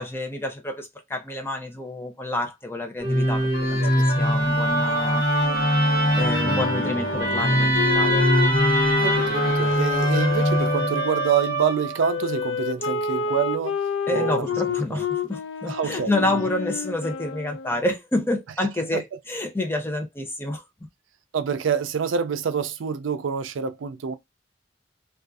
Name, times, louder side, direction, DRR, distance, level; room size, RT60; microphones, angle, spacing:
voice 1, 0.0-5.2 6.1-8.3 14.1-20.6, left 1 dB, 10° left, 0.5 m, -28 dB
Musical instrument, 3.0-12.2, equal, 50° left, 0.9 m, -22 dB
Wind instrument woodwind instrument, 5.4-11.3 12.0-17.8, left 5 dB, 75° left, 0.4 m, -29 dB
voice 2, 8.9-13.8 14.1-14.6 14.9-15.0 15.7-16.4 18.9-19.0 21.3-24.1, right 7 dB, 85° right, 0.4 m, -27 dB
2.5 x 2.4 x 2.3 m
head